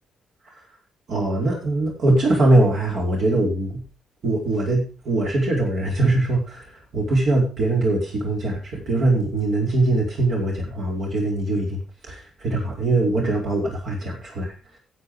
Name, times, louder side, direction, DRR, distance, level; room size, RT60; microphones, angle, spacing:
voice 1, 1.1-3.8 4.2-14.5, right 2 dB, 60° right, -2 dB, 4.8 m, -22 dB
13.0 x 7.7 x 5.1 m, 0.34 s
cardioid pair, 90°, 0 cm